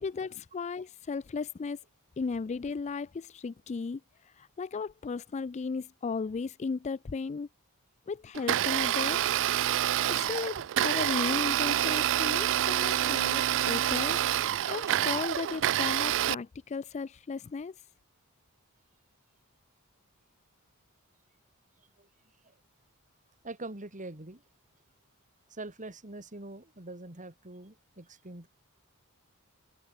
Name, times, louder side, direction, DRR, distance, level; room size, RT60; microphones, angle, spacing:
voice 1, 0.0-1.8 2.2-4.0 4.4-7.5 8.1-9.2 10.1-14.2 14.7-17.7, left 4 dB, 30° left, 0.4 m, -35 dB
Domestic sounds home sounds, 8.3-16.3, right 12 dB, 60° right, 0.4 m, -27 dB
sound 1, 13.0-13.5 13.9-14.4 14.9-15.3, right 2 dB, 15° right, 3.4 m, -48 dB
voice 2, 23.4-24.4 25.5-28.5, right 2 dB, 35° right, 3.2 m, -43 dB
head